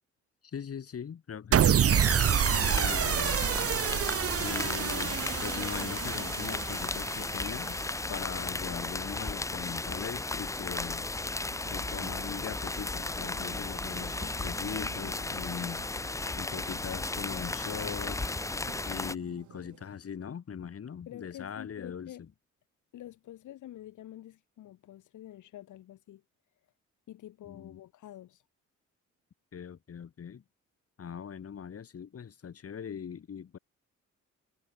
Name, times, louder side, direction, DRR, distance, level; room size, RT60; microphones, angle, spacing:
voice 1, 0.4-3.5 4.4-11.1 11.7-15.8 16.3-18.2 18.9-22.3 27.4-27.8 29.5-30.4 31.0-33.6, left 7 dB, 50° left, 7.8 m, -40 dB
sound 1, 1.5-7.9, right 9 dB, 50° right, 1.2 m, -28 dB
sound 2, 1.9-19.2, left 2 dB, 10° left, 0.6 m, -35 dB
sound 3, 11.1-20.0, right 13 dB, 75° right, 2.6 m, -53 dB
voice 2, 14.8-15.1 21.1-22.2 22.9-26.2 27.1-28.5, left 13 dB, 80° left, 4.3 m, -47 dB
cardioid pair, 90°, 30 cm